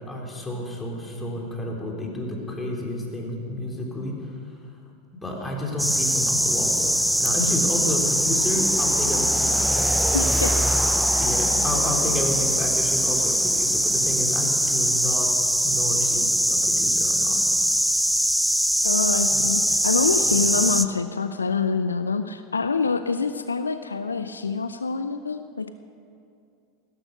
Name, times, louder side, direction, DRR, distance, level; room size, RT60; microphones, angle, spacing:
voice 1, 0.1-4.1 5.2-6.9 7.2-9.7 11.1-15.3 15.6-17.4 19.3-19.5 20.2-20.5, left 1 dB, 15° left, -1 dB, 3.6 m, -31 dB
sound 1, 5.8-20.8, equal, ahead, 0.6 m, -22 dB
voice 2, 10.1-10.6 18.8-25.7, left 4 dB, 80° left, 10 dB, 0.5 m, -26 dB
16.0 x 13.0 x 6.7 m, 2.5 s
figure-of-eight pair, 85°, 0 cm